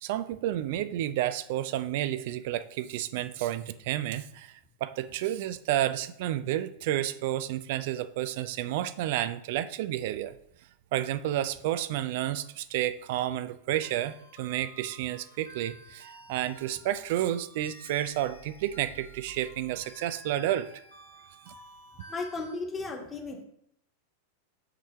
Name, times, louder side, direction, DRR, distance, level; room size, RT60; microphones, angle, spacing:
voice 1, 0.0-4.5 4.8-10.3 10.9-20.7 21.5-21.6, right 13 dB, 50° right, 13 dB, 0.4 m, -31 dB
sound 1, 13.8-22.5, equal, 90° right, 1.8 m, -52 dB
voice 2, 22.1-23.4, left 3 dB, 20° left, 1 dB, 1.3 m, -35 dB
5.8 x 3.3 x 5.5 m, 0.73 s
figure-of-eight pair, 90°, 0 cm